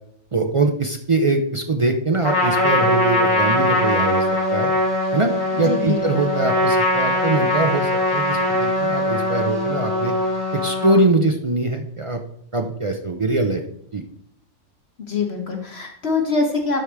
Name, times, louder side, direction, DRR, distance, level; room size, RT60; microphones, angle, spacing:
voice 1, 0.3-4.7 5.1-5.3 5.6-10.1 10.5-12.2 12.5-13.6 13.9-14.0, right 2 dB, 40° right, 4 dB, 0.4 m, -22 dB
Trumpet, 2.2-11.0, left 1 dB, 20° left, 1.7 m, -21 dB
voice 2, 5.6-6.0 15.1-16.8, left 4 dB, 55° left, 2 dB, 1.3 m, -23 dB
12.0 x 4.8 x 3.4 m, 0.71 s
omnidirectional pair, 1.3 m